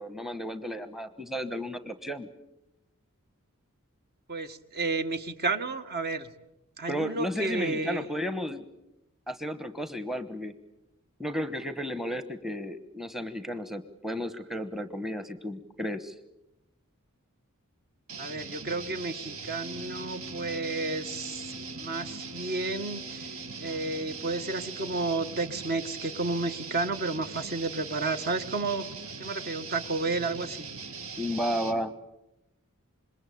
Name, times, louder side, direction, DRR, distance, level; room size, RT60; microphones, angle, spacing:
voice 1, 0.0-2.3 6.9-8.6 9.3-10.5 11.2-16.1 31.2-31.9, equal, ahead, 11 dB, 1.1 m, -33 dB
voice 2, 4.3-6.3 6.8-8.0 18.2-21.4 21.7-28.9 29.2-30.7, right 3 dB, 45° right, 9 dB, 1.7 m, -32 dB
sound 1, 18.1-31.8, right 5 dB, 70° right, 2.2 m, -41 dB
Wind instrument woodwind instrument, 19.6-25.0, left 2 dB, 20° right, 2.7 m, -47 dB
27.0 x 22.0 x 8.6 m, 0.91 s
head